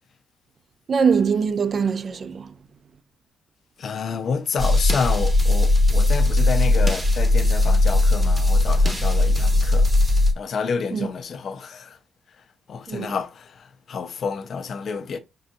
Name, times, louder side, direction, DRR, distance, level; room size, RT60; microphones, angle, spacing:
voice 1, 0.9-2.5 10.9-11.1 12.9-13.2, right 6 dB, 35° right, 0.3 m, -22 dB
voice 2, 3.8-9.9 10.4-12.0 12.4-15.2, left 5 dB, 45° left, 0.4 m, -29 dB
sound 1, 4.6-10.3, left 2 dB, 15° right, 0.7 m, -18 dB
5.4 x 2.5 x 2.6 m
cardioid pair, 150°, 0 cm